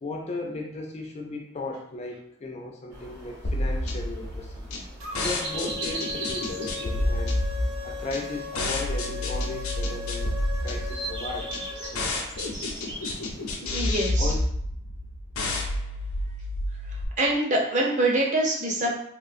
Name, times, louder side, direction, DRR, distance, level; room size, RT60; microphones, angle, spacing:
voice 1, 0.0-4.7 5.1-7.3 7.8-10.4 10.6-11.5 11.9-12.2 14.2-14.4, left 2 dB, 30° left, 1 dB, 0.3 m, -36 dB
sound 1, 2.9-13.6, right 2 dB, 55° right, 1.2 m, -40 dB
sound 2, 3.4-17.0, left 1 dB, 90° left, 0.6 m, -29 dB
sound 3, 5.0-12.2, left 4 dB, 85° right, 0.6 m, -38 dB
voice 2, 13.6-14.3 16.9-18.9, right 1 dB, 35° right, -1 dB, 0.6 m, -25 dB
3.6 x 2.4 x 2.5 m, 0.70 s
head